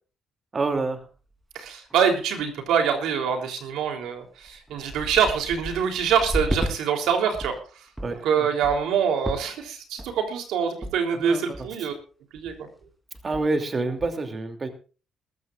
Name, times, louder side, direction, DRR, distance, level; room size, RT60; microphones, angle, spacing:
voice 1, 0.5-1.0 8.0-8.5 11.1-11.7 13.2-14.7, right 3 dB, 35° right, 6 dB, 2.8 m, -28 dB
sound 1, 1.3-1.4 1.7-2.1 2.4-2.7 3.3-3.4 4.0-4.1 4.4-6.7 7.1-7.6 8.0-8.2 8.6-8.9 9.2-9.7 10.0-10.3 10.8-10.9 11.2-11.3 11.5-11.9 12.3-12.6 12.8-12.9 13.1-13.6 14.0-14.1, right 1 dB, 10° right, 3.4 m, -33 dB
voice 2, 1.6-7.5 8.2-11.9 12.3-12.7, right 7 dB, 90° right, 4 dB, 3.4 m, -25 dB
21.0 x 15.0 x 2.5 m, 0.36 s
cardioid pair, 90°, 0 cm